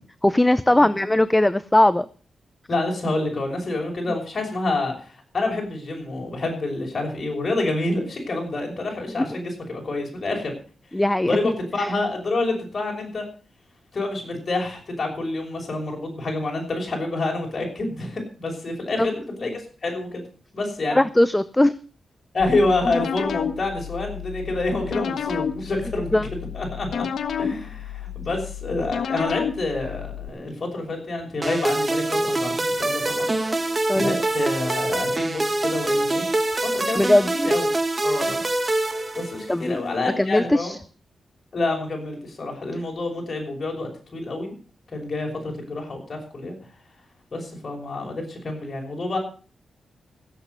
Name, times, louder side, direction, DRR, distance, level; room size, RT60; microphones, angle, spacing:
voice 1, 0.2-2.1 9.2-9.4 10.9-11.5 11.8-11.9 19.0-19.1 20.9-21.7 26.1-26.3 33.9-34.2 37.0-37.3 38.1-38.3 39.5-39.8 40.2-40.8, left 1 dB, 10° left, 15 dB, 0.6 m, -19 dB
voice 2, 2.7-10.6 11.2-13.2 13.9-20.2 20.5-21.0 22.3-26.1 26.5-27.0 27.4-33.6 33.9-36.2 36.6-37.0 37.3-37.7 38.0-38.4 39.1-40.7 41.5-44.5 44.9-46.6 47.3-49.2, left 2 dB, 45° left, 0 dB, 6.0 m, -28 dB
sound 1, 22.4-30.3, left 8 dB, 80° left, 1.3 m, -31 dB
sound 2, 31.4-39.7, right 2 dB, 30° right, 1.7 m, -24 dB
16.0 x 8.2 x 6.9 m, 0.40 s
cardioid pair, 85°, 0 cm